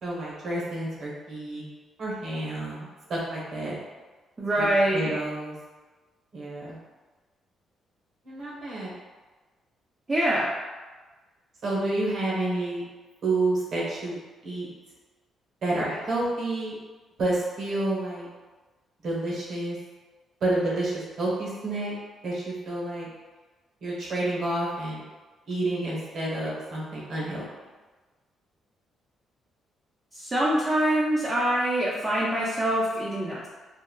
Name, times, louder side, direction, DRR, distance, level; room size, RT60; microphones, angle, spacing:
voice 1, 0.0-1.6 2.0-3.8 4.6-5.6 6.3-6.8 8.2-8.9 11.6-12.8 13.2-14.2 14.4-14.7 15.6-16.7 17.2-18.3 19.0-19.8 20.4-21.9 22.2-23.1 23.8-25.0 25.5-27.4, right 2 dB, 65° right, -5 dB, 1.0 m, -29 dB
voice 2, 4.4-5.1 10.1-10.5 30.1-33.5, right 1 dB, 25° right, -7 dB, 0.6 m, -24 dB
3.7 x 2.0 x 2.3 m, 1.3 s
cardioid pair, 90°, 0 cm